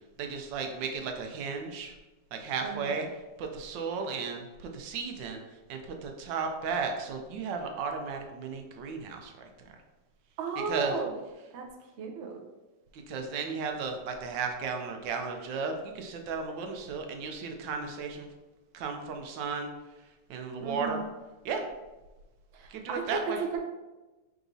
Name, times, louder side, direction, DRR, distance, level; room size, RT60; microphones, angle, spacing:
voice 1, 0.2-1.9 2.3-3.1 3.4-5.4 5.7-9.3 10.7-10.9 12.9-18.3 18.7-19.7 20.3-21.0 21.4-21.6 22.7-23.4, right 5 dB, 80° right, 4 dB, 1.3 m, -34 dB
voice 2, 2.6-3.0 10.4-11.1 11.5-11.6 12.0-12.4 20.6-21.0 22.5-23.6, right 5 dB, 60° right, 2 dB, 0.7 m, -34 dB
4.8 x 4.0 x 2.6 m, 1.1 s
omnidirectional pair, 2.0 m